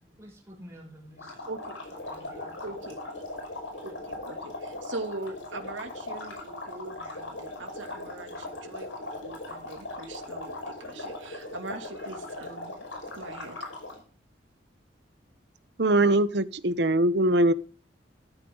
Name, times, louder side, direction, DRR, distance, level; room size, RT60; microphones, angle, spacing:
voice 1, 0.0-1.5 1.9-2.7, equal, 15° right, 6.3 m, -50 dB
sound 1, 1.2-14.0, left 2 dB, 80° left, 5.4 m, -39 dB
voice 2, 1.5-1.8 2.6-3.0 3.8-12.8 13.1-13.6, right 2 dB, 80° right, 2.8 m, -41 dB
voice 3, 15.8-17.5, right 1 dB, 60° right, 0.9 m, -22 dB
14.0 x 13.5 x 3.9 m
head